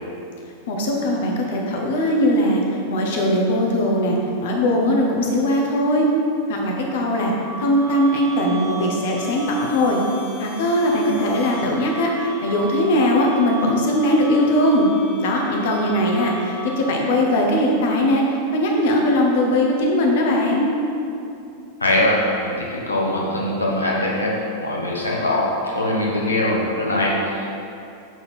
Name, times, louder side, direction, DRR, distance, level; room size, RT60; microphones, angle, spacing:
voice 1, 0.7-2.6 2.9-4.2 4.4-6.1 6.5-7.3 7.6-10.0 10.4-14.9 15.2-20.7, left 1 dB, 55° left, 0 dB, 1.0 m, -20 dB
sound 1, 6.8-17.1, right 1 dB, 35° left, 1.6 m, -36 dB
voice 2, 21.8-24.4 24.6-27.5, left 1 dB, 80° left, -3 dB, 1.2 m, -22 dB
7.3 x 4.1 x 4.3 m, 2.7 s
figure-of-eight pair, 90°, 0 cm